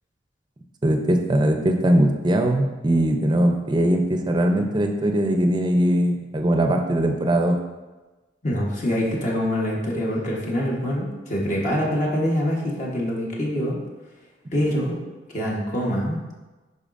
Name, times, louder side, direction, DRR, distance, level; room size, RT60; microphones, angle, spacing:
voice 1, 0.8-7.6, right 1 dB, 25° right, 4 dB, 0.5 m, -20 dB
voice 2, 8.4-13.8 14.5-15.0 15.3-16.2, equal, 45° left, -3 dB, 1.2 m, -25 dB
10.5 x 4.0 x 2.6 m, 1.2 s
head